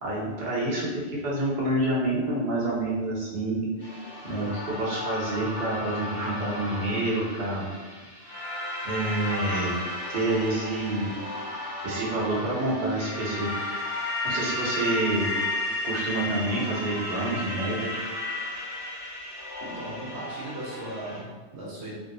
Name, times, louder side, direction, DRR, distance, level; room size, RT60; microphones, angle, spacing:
voice 1, 0.0-4.0 4.2-7.7 8.8-9.8 10.1-11.1 11.8-13.5 14.2-15.3 15.8-18.0, right 1 dB, 45° right, -7 dB, 1.0 m, -28 dB
sound 1, 3.8-21.2, left 1 dB, 55° left, 1.1 m, -34 dB
voice 2, 19.6-21.9, right 1 dB, 70° right, -6 dB, 1.0 m, -38 dB
3.1 x 2.6 x 2.6 m, 1.4 s
omnidirectional pair, 1.2 m